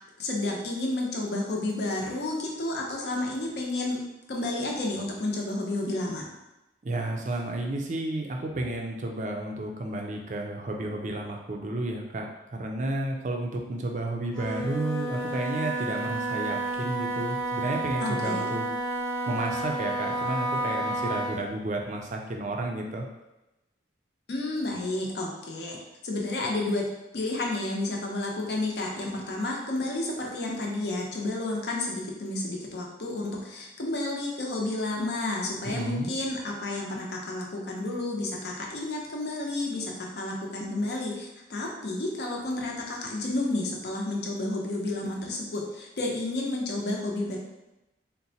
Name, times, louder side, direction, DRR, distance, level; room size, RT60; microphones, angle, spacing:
voice 1, 0.2-4.0 4.3-6.3 18.0-18.5 24.3-25.8 26.0-26.8 27.1-47.4, left 2 dB, 60° left, -1 dB, 0.6 m, -31 dB
voice 2, 6.8-18.7 19.3-23.1 35.6-36.1, right 2 dB, 40° right, 1 dB, 0.4 m, -32 dB
Wind instrument woodwind instrument, 14.3-21.5, right 2 dB, 25° left, 0.7 m, -31 dB
3.8 x 2.1 x 2.7 m, 0.97 s
head